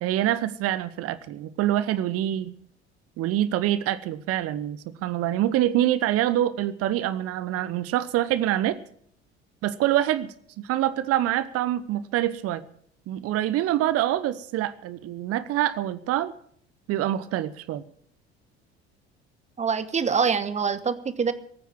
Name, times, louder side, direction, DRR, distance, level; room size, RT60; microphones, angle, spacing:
voice 1, 0.0-2.5 3.2-8.8 9.6-12.6 13.1-16.3 16.9-17.8, right 13 dB, 45° right, 15 dB, 0.9 m, -25 dB
voice 2, 19.6-21.3, right 6 dB, 20° right, 13 dB, 1.1 m, -25 dB
18.0 x 9.3 x 7.3 m, 0.63 s
figure-of-eight pair, 60°, 32 cm